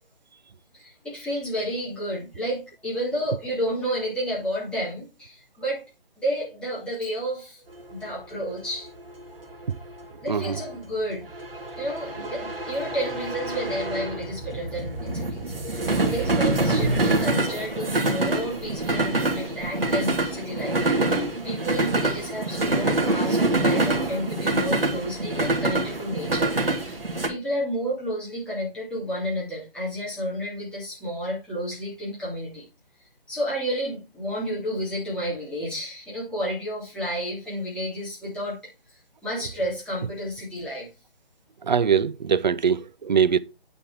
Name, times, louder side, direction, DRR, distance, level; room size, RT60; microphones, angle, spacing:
voice 1, 0.7-5.8 6.2-7.6 7.9-8.9 10.2-11.2 11.8-20.8 21.3-26.5 26.8-27.0 27.3-32.6 33.3-38.6 39.2-40.9, equal, 5° left, 3.3 m, -31 dB
sound 1, 7.8-27.3, right 2 dB, 70° right, 2.8 m, -26 dB
voice 2, 10.3-10.6 41.6-43.4, right 7 dB, 50° right, 0.6 m, -22 dB
8.7 x 5.4 x 4.8 m
figure-of-eight pair, 150°, 29 cm